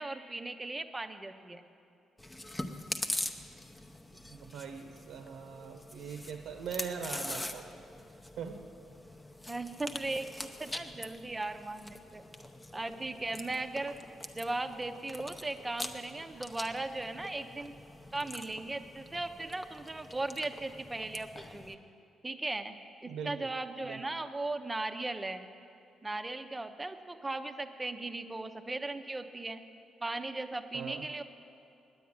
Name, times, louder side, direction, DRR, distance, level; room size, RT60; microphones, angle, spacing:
voice 1, 0.0-1.6 9.5-12.2 12.7-14.0 14.3-17.7 18.1-21.8 22.2-22.8 23.0-25.5 26.0-29.6 30.0-31.2, right 2 dB, 15° right, 8 dB, 0.7 m, -37 dB
Chewing mastication, 2.2-21.7, left 1 dB, 15° left, 0.8 m, -44 dB
voice 2, 4.3-7.7 8.4-8.6 23.0-23.5 23.8-24.0 30.7-31.1, right 6 dB, 80° right, 5 dB, 0.8 m, -41 dB
9.4 x 9.0 x 9.6 m, 2.6 s
cardioid pair, 90°, 0 cm